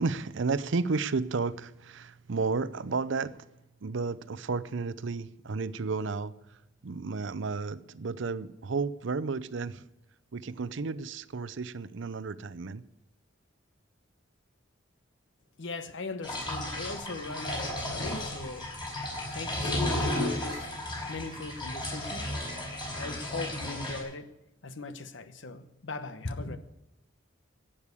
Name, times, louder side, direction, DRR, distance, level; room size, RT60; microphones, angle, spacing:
voice 1, 0.0-3.4 3.8-6.6 6.8-9.9 10.3-12.8, right 4 dB, 70° right, 0.6 m, -32 dB
voice 2, 15.6-18.7 19.3-20.8 21.1-22.5 22.9-26.6, left 3 dB, 70° left, 1.0 m, -39 dB
sound 1, 16.2-24.0, left 1 dB, 25° left, 4.9 m, -33 dB
12.0 x 8.7 x 8.3 m
head